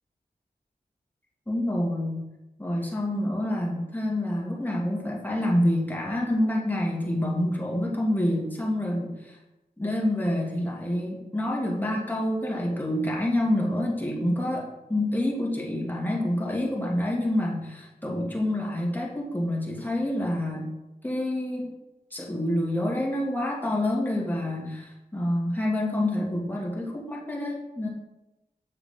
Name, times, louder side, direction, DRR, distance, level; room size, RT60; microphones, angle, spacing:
voice 1, 1.5-2.3 2.6-9.3 9.8-20.7 21.0-21.7 22.1-27.9, left 1 dB, 10° left, -3 dB, 2.4 m, -27 dB
7.3 x 6.9 x 3.8 m, 0.98 s
cardioid pair, 50°, 17 cm